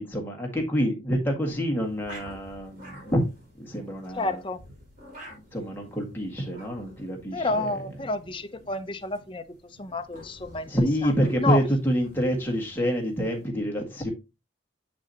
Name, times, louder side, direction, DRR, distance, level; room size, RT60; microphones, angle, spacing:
voice 1, 0.0-3.2 3.6-4.4 5.3-7.9 10.7-14.1, equal, 10° left, 1.7 m, -27 dB
sound 1, 1.7-13.5, equal, 45° right, 4.0 m, -50 dB
voice 2, 4.1-4.6 7.3-11.1 11.4-11.6, left 2 dB, 25° left, 0.5 m, -30 dB
7.6 x 6.2 x 2.8 m
head